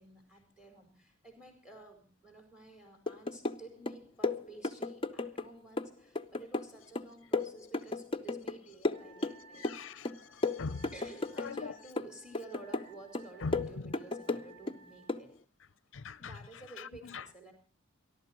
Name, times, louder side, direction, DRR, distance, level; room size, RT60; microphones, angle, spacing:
voice 1, 0.0-9.7 10.9-15.3 16.2-17.5, right 2 dB, 5° right, 4.7 m, -52 dB
sound 1, 3.1-3.6 3.9-5.5 5.8-8.6 8.8-9.8 10.0-11.7 12.0-12.9 13.1-14.8 15.1-15.3, left 3 dB, 25° left, 0.7 m, -34 dB
Wind instrument woodwind instrument, 8.9-15.3, right 4 dB, 85° right, 7.5 m, -59 dB
voice 2, 9.5-10.9 11.4-11.7 13.4-13.5 15.9-16.3 16.8-17.2, left 4 dB, 70° left, 0.6 m, -41 dB
28.5 x 12.0 x 3.0 m
head